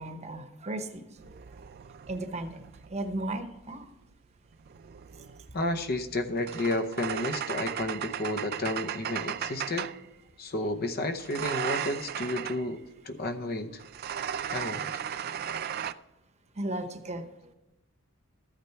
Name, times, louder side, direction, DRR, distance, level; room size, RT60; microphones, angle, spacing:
voice 1, 0.0-1.6 2.1-2.6 2.9-3.9 5.2-5.3 14.3-14.8 16.5-17.5, right 1 dB, 30° right, 8 dB, 1.0 m, -36 dB
sound 1, 1.2-3.3 4.5-10.1 11.2-12.7 13.8-15.9, right 9 dB, 45° right, 0.4 m, -36 dB
voice 2, 5.5-9.9 10.4-13.8 14.5-15.0, left 1 dB, 50° left, 9 dB, 0.8 m, -32 dB
13.5 x 8.7 x 4.5 m, 0.97 s
head